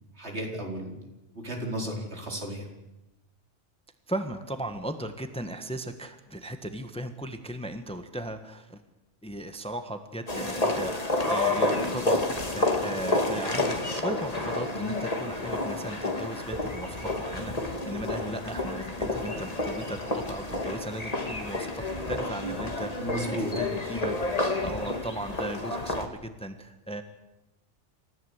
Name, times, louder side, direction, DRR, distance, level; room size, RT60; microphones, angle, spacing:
voice 1, 0.2-1.0 1.3-2.7 23.0-23.5, right 1 dB, 65° right, 0 dB, 4.7 m, -34 dB
voice 2, 4.1-8.8 9.2-24.1 24.6-27.0, right 1 dB, 5° left, 8 dB, 1.3 m, -37 dB
sound 1, 10.3-26.1, left 2 dB, 30° left, 2.3 m, -30 dB
28.0 x 15.0 x 8.1 m, 0.98 s
omnidirectional pair, 1.2 m